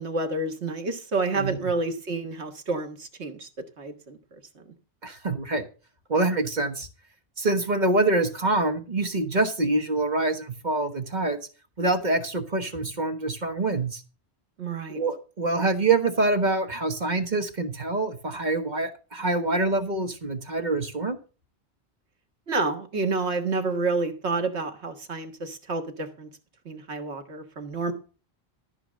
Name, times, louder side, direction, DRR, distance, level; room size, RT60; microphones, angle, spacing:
voice 1, 0.0-3.5 3.8-4.2 14.6-15.0 22.5-26.3 26.7-27.9, right 3 dB, 90° right, 1.9 m, -29 dB
voice 2, 1.3-1.6 5.0-5.7 6.1-6.9 7.4-11.5 11.8-14.0 14.9-21.2, right 2 dB, 45° right, 1.4 m, -25 dB
14.0 x 4.9 x 7.5 m
omnidirectional pair, 1.1 m